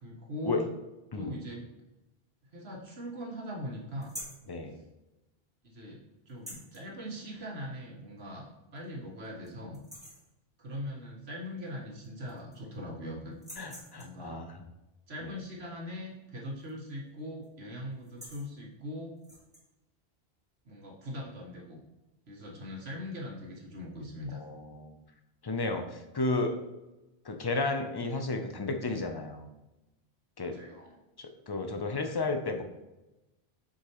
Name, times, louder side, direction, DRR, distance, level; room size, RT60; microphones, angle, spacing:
voice 1, 0.0-0.7 1.1-1.7 2.5-4.1 5.6-6.0 6.3-8.4 8.7-9.8 10.6-13.3 13.9-14.4 15.1-19.1 20.6-21.8 22.3-24.4 30.4-31.0, left 1 dB, 75° right, -2 dB, 1.7 m, -41 dB
sound 1, 4.0-4.5 6.3-6.8 8.2-8.3 8.8-8.9 9.2-9.5 9.7-10.3 11.7-11.8 12.0-12.7 13.3-14.2 16.6-16.9 17.2-17.5 17.9-18.5 19.2-19.6, equal, 5° right, 1.4 m, -47 dB
voice 2, 4.5-4.8 13.6-14.7 15.2-15.4 24.3-25.0 25.4-26.6 27.2-29.5 30.4-30.6 31.2-32.6, left 3 dB, 30° left, 6 dB, 0.4 m, -33 dB
6.6 x 5.0 x 3.0 m, 1.0 s
omnidirectional pair, 1.1 m